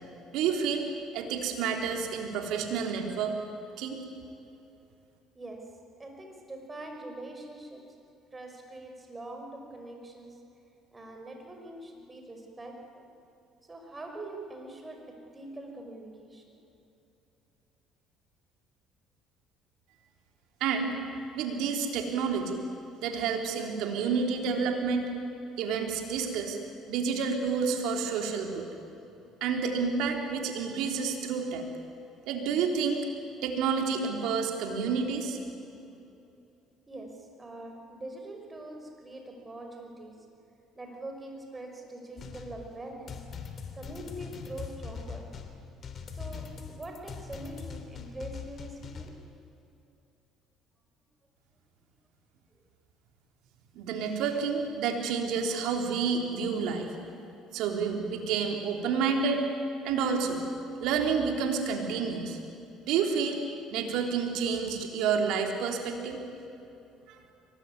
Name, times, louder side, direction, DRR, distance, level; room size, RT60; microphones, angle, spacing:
voice 1, 0.3-3.3 3.8-4.0 20.6-20.9 21.3-22.6 23.0-25.1 25.6-26.6 26.9-28.7 29.4-31.6 32.3-33.0 33.4-35.4 53.7-56.9 57.5-59.5 59.8-60.4 60.8-62.4 62.8-63.4 63.7-66.2 67.1-67.2, right 5 dB, 70° right, 3 dB, 3.5 m, -29 dB
voice 2, 5.3-8.0 8.3-10.4 10.9-13.1 13.6-16.5 36.9-40.3 40.8-43.2 43.7-45.3 46.1-49.2, right 2 dB, 25° right, 3 dB, 5.6 m, -43 dB
sound 1, 42.2-49.1, left 6 dB, 45° left, 3.1 m, -42 dB
23.0 x 19.5 x 9.6 m, 2.8 s
hypercardioid pair, 65°, 0 cm